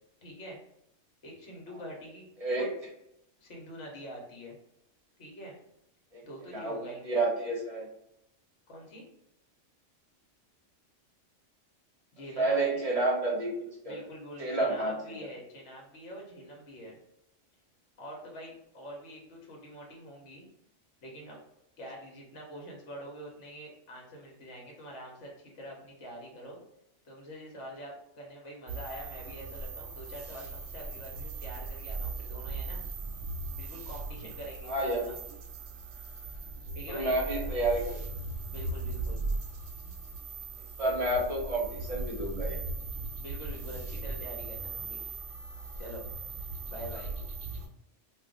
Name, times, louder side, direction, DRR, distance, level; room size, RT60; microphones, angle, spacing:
voice 1, 0.2-0.6 1.2-2.3 2.6-2.7 3.4-4.6 5.2-5.6 6.2-7.0 8.7-9.0 12.1-12.6 13.8-17.0 18.0-20.5 21.0-21.4 21.8-26.6 27.0-32.8 33.5-35.1 36.7-37.1 38.5-39.2 43.2-45.0 45.8-46.1 46.7-47.1, equal, 70° left, -1 dB, 1.2 m, -45 dB
voice 2, 6.5-7.9 12.4-14.0 14.4-15.3 34.7-35.2 36.7-38.0 40.8-42.6, right 2 dB, 35° right, -3 dB, 0.7 m, -30 dB
sound 1, 28.7-47.7, right 3 dB, 75° right, 0.9 m, -38 dB
2.4 x 2.3 x 3.7 m, 0.80 s
omnidirectional pair, 1.3 m